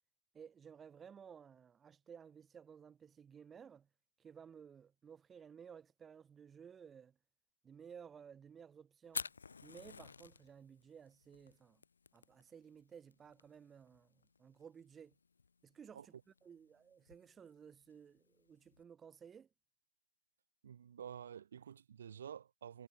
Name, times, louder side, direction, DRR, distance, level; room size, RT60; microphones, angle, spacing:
voice 1, 0.3-3.9 4.2-7.1 7.6-9.3 9.6-11.8 12.1-15.1 15.6-16.1 16.4-19.5, right 7 dB, 10° right, 2.0 m, -56 dB
Fire, 9.1-18.8, left 5 dB, 75° left, 1.5 m, -51 dB
voice 2, 20.6-22.9, right 8 dB, 55° right, 1.0 m, -50 dB
hypercardioid pair, 155°, 0 cm